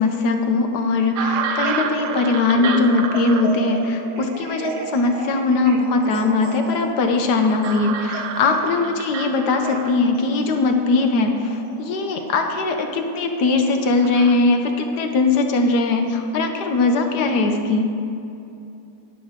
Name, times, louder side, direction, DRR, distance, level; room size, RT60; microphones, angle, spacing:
voice 1, 0.0-17.9, left 3 dB, 70° left, 5 dB, 1.5 m, -20 dB
sound 1, 1.2-14.4, right 6 dB, 70° right, 1.2 m, -31 dB
12.0 x 10.0 x 3.7 m, 2.7 s
omnidirectional pair, 1.9 m